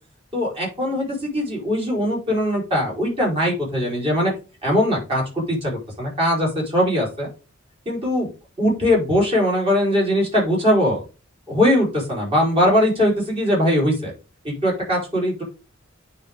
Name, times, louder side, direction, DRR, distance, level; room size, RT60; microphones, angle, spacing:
voice 1, 0.3-4.3 4.6-7.3 7.8-8.3 8.6-11.0 11.5-14.1 14.4-15.4, equal, 30° right, -3 dB, 4.7 m, -21 dB
9.7 x 4.5 x 3.7 m, 0.32 s
head